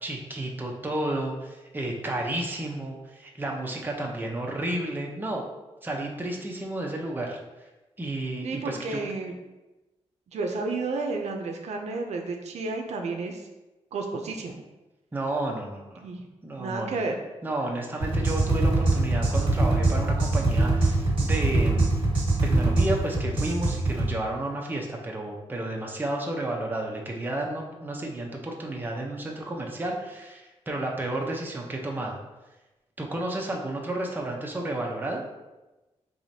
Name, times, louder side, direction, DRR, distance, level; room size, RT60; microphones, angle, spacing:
voice 1, 0.0-5.4 5.8-7.4 8.0-9.0 15.1-16.1 16.4-17.0 17.4-21.9 22.4-32.1 33.0-35.2, right 1 dB, 15° right, 0 dB, 0.6 m, -32 dB
voice 2, 8.4-9.3 10.3-13.5 13.9-14.6 16.0-16.3 16.6-17.2, right 3 dB, 75° right, 3 dB, 0.5 m, -31 dB
sound 1, 18.0-24.1, right 2 dB, 50° right, 1.4 m, -23 dB
4.8 x 3.0 x 2.7 m, 1.1 s
wide cardioid pair, 115°, 12 cm